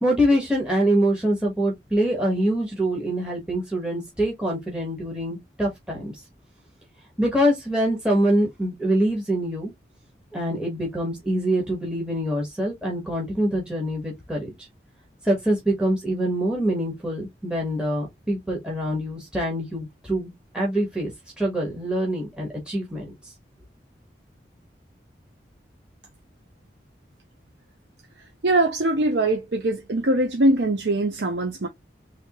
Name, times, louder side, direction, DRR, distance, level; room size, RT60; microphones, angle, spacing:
voice 1, 0.0-6.2 7.2-9.7 10.3-14.5 15.2-21.1 21.4-23.1, right 1 dB, 5° right, 1.2 m, -24 dB
voice 2, 28.4-31.7, right 1 dB, 85° right, 0.7 m, -22 dB
3.4 x 3.2 x 2.9 m
head